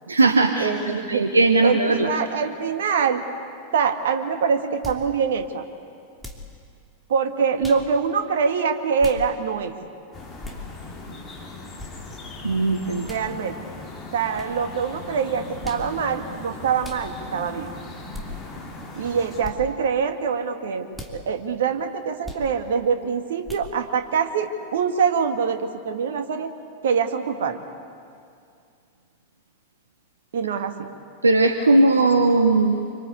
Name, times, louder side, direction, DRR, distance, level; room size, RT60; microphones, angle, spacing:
voice 1, 0.1-0.7 1.1-2.1 12.4-13.1 31.2-32.9, right 2 dB, 75° right, 6 dB, 1.2 m, -18 dB
voice 2, 0.6-1.3 1.6-3.2 3.7-5.6 7.1-9.8 13.0-13.6 14.1-17.7 18.9-26.5 26.8-27.6 30.3-30.9, right 6 dB, 60° right, 7 dB, 1.8 m, -24 dB
sound 1, 4.8-5.1 6.2-6.5 7.6-7.9 9.0-9.2 10.4-10.6 11.8-11.9 13.0-13.3 14.3-14.5 15.6-15.9 16.8-17.0 18.1-18.3 19.4-19.6 20.9-21.2 22.2-22.5 23.4-23.7, left 2 dB, 5° right, 3.0 m, -37 dB
sound 2, 10.1-19.4, left 2 dB, 20° left, 6.0 m, -39 dB
26.5 x 25.0 x 8.3 m, 2.4 s
figure-of-eight pair, 90°, 0 cm